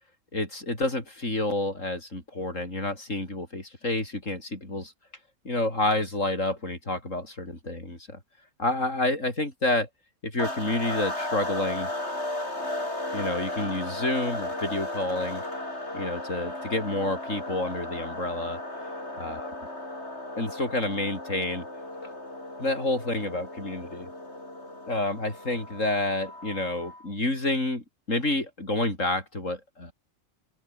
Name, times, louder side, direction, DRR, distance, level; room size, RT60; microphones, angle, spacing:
voice 1, 0.3-4.9 5.4-8.2 8.6-9.9 10.2-11.9 13.1-15.4 15.9-18.6 19.2-19.5 20.4-21.6 22.0-22.1 22.6-24.1 24.9-29.9, left 2 dB, 75° left, 6.8 m, -29 dB
sound 1, 10.4-27.1, left 1 dB, 55° left, 7.2 m, -35 dB
open air
omnidirectional pair, 1.3 m